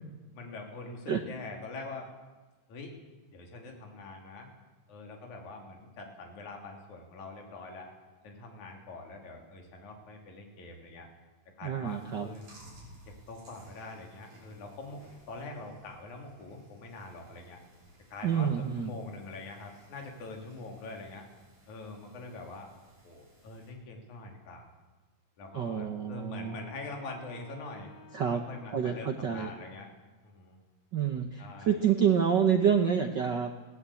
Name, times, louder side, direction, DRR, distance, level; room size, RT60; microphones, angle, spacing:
voice 1, 0.3-2.1 2.7-3.0 3.3-4.5 4.9-7.9 8.2-11.1 11.6-12.5 13.1-17.6 18.1-21.3 21.7-22.7 23.0-24.7 25.4-27.9 28.3-29.9 30.2-30.6 31.4-31.8, left 3 dB, 65° left, 1 dB, 4.4 m, -44 dB
voice 2, 11.6-12.3 18.2-18.9 25.5-26.6 28.1-28.4 28.7-29.5 30.9-33.5, right 8 dB, 90° right, 5 dB, 0.9 m, -28 dB
Chewing mastication, 11.9-23.7, right 1 dB, 65° right, 7.4 m, -58 dB
Wind instrument woodwind instrument, 25.4-29.6, left 2 dB, 5° right, 3.5 m, -56 dB
20.0 x 17.0 x 8.5 m, 1.2 s
omnidirectional pair, 3.7 m